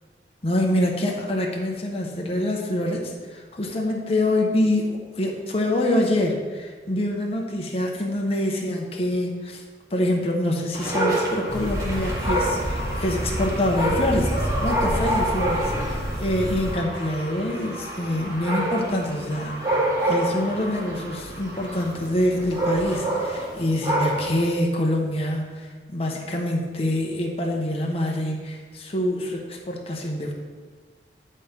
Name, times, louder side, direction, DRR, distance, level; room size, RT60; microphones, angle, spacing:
voice 1, 0.4-9.6 9.9-30.3, left 1 dB, 35° left, 0 dB, 0.9 m, -25 dB
Dog, 10.7-24.5, right 1 dB, 20° right, 1.8 m, -28 dB
sound 1, 11.5-16.7, equal, 5° left, 1.5 m, -29 dB
9.9 x 4.3 x 5.2 m, 1.5 s
head